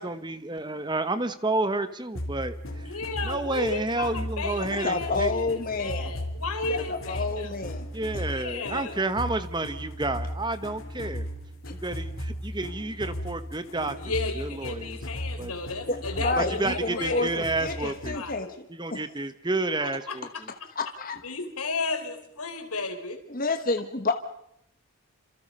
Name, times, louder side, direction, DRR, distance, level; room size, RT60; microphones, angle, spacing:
voice 1, 0.0-2.6 3.3-5.3 7.9-11.3 11.7-14.0 14.4-15.0 15.4-15.5 16.4-18.2 18.8-20.3, right 2 dB, 20° right, 12 dB, 1.0 m, -30 dB
sound 1, 2.1-18.3, equal, 60° left, 3.7 m, -36 dB
voice 2, 2.7-7.5 8.3-9.1 14.0-18.5 19.8-20.7 21.2-23.2, left 3 dB, 85° left, 6 dB, 4.0 m, -34 dB
voice 3, 4.8-6.1 6.7-7.8 8.1-8.4 15.9-16.0 16.2-18.5 18.9-19.0 20.8-21.2 23.3-24.2, left 3 dB, 40° left, 6 dB, 1.3 m, -29 dB
28.0 x 27.0 x 5.5 m, 0.74 s
head